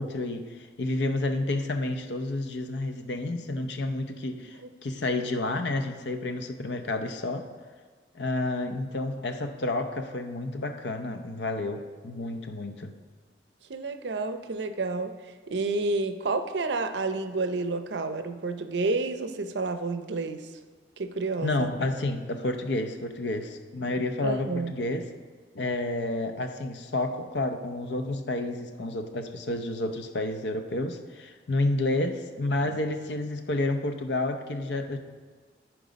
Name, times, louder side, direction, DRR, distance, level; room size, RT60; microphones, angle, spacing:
voice 1, 0.0-7.5 8.1-12.9 21.4-25.1 25.5-35.0, left 2 dB, 75° left, 7 dB, 0.7 m, -30 dB
voice 2, 13.7-15.1 15.5-20.5 21.0-21.7 24.2-24.7, right 3 dB, 75° right, 9 dB, 0.6 m, -30 dB
13.0 x 4.7 x 5.1 m, 1.5 s
head